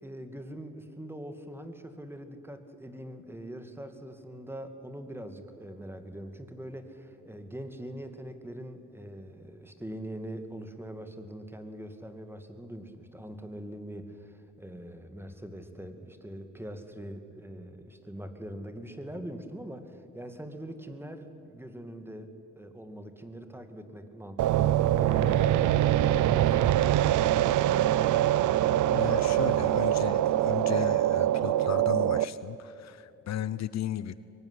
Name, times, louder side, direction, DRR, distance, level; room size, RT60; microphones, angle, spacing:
voice 1, 0.0-26.7 27.7-27.8, right 1 dB, 10° right, 8 dB, 2.3 m, -42 dB
sound 1, 24.4-32.2, right 12 dB, 80° right, 0.7 m, -24 dB
voice 2, 28.9-34.2, left 11 dB, 65° left, 16 dB, 0.8 m, -35 dB
22.5 x 19.5 x 9.9 m, 2.8 s
cardioid pair, 90°, 30 cm